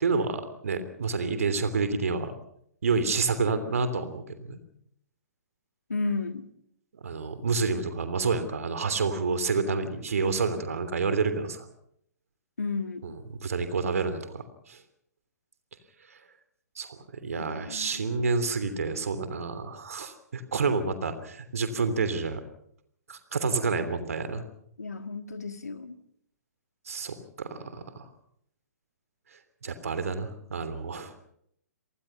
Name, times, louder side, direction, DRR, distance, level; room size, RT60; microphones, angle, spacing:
voice 1, 0.0-2.3 2.8-4.6 7.0-11.6 13.0-14.8 16.8-22.4 23.1-24.4 26.9-28.0 29.6-31.1, right 4 dB, 60° right, 10 dB, 3.2 m, -29 dB
voice 2, 5.9-6.5 12.6-13.1 17.4-18.3 24.8-26.0, left 3 dB, 70° left, 10 dB, 1.9 m, -33 dB
28.0 x 19.0 x 5.7 m, 0.72 s
figure-of-eight pair, 120°, 9 cm